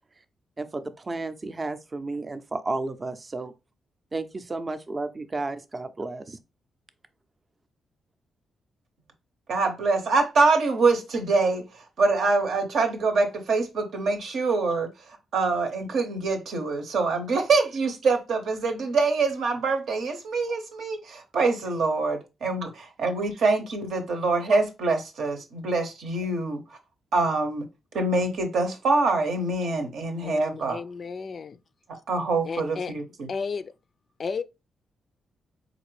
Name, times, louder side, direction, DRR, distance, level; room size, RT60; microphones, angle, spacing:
voice 1, 0.6-3.5 4.1-6.4, right 3 dB, 35° right, 0.5 m, -32 dB
voice 2, 9.5-14.9 15.3-26.6 27.1-27.7 27.9-30.8 32.1-33.3, right 3 dB, 75° right, 0.8 m, -25 dB
voice 3, 30.2-31.6 32.4-32.9 33.3-33.7 34.2-34.4, left 5 dB, 50° left, 0.3 m, -33 dB
4.0 x 2.6 x 3.1 m
supercardioid pair, 60°, 0 cm